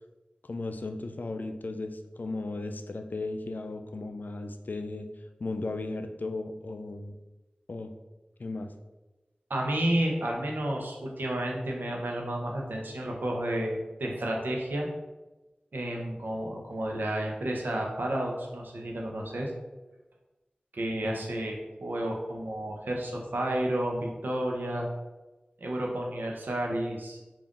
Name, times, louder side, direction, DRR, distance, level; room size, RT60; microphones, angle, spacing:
voice 1, 0.4-5.1 5.4-7.1 7.7-7.9 8.4-8.7 20.9-21.2, left 2 dB, 65° left, 7 dB, 0.3 m, -36 dB
voice 2, 9.5-14.9 15.7-19.5 20.7-24.9 25.6-27.2, right 1 dB, 85° right, 0 dB, 0.7 m, -31 dB
3.6 x 2.5 x 3.6 m, 1.1 s
wide cardioid pair, 45°, 3 cm